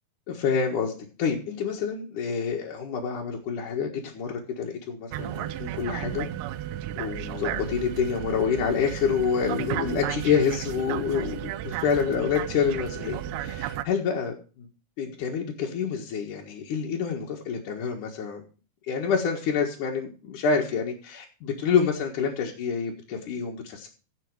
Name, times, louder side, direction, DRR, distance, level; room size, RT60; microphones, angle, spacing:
voice 1, 0.3-6.3 7.0-14.7 15.0-18.4 18.9-23.9, left 6 dB, 60° left, -2 dB, 2.9 m, -27 dB
sound 1, 5.1-13.8, right 12 dB, 85° right, 2.7 m, -33 dB
15.5 x 6.8 x 4.8 m, 0.35 s
omnidirectional pair, 4.4 m